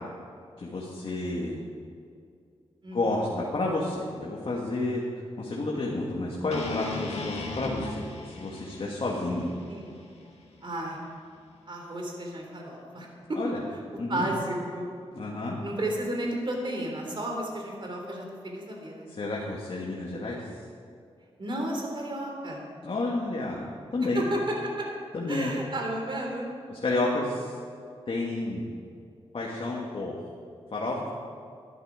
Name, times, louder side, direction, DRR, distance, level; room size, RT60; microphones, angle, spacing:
voice 1, 0.6-1.6 2.9-3.3 3.5-5.0 5.4-9.5 13.4-13.6 14.0-14.3 15.1-15.6 19.2-20.4 22.8-24.2 25.1-25.5 26.7-27.5 28.1-28.7 29.3-30.2 30.7-31.1, left 2 dB, 55° left, -4 dB, 1.9 m, -30 dB
voice 2, 2.8-3.3 9.7-10.0 10.6-11.0 11.7-13.4 13.7-14.9 15.6-19.1 21.4-22.7 24.1-24.9 25.3-26.5, right 1 dB, 45° right, 1 dB, 3.1 m, -33 dB
sound 1, 6.5-10.6, left 3 dB, 75° left, 1.8 m, -38 dB
12.0 x 11.5 x 5.1 m, 2.3 s
cardioid pair, 70°, 11 cm